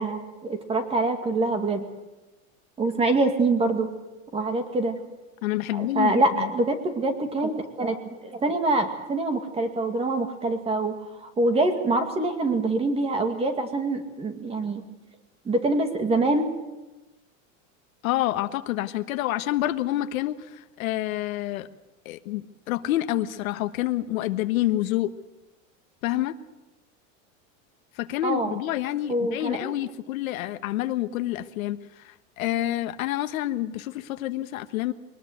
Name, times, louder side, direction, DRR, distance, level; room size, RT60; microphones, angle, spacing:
voice 1, 0.0-1.8 2.8-3.9 4.3-5.0 5.7-8.0 8.2-10.9 11.2-14.8 15.5-16.5 28.2-28.5 29.1-29.7, right 2 dB, 15° right, 7 dB, 2.2 m, -25 dB
voice 2, 5.4-6.5 18.0-21.7 22.0-25.1 26.0-26.4 28.0-34.9, left 14 dB, 90° left, 10 dB, 1.4 m, -28 dB
23.0 x 19.5 x 8.1 m, 1.1 s
supercardioid pair, 165°, 40 cm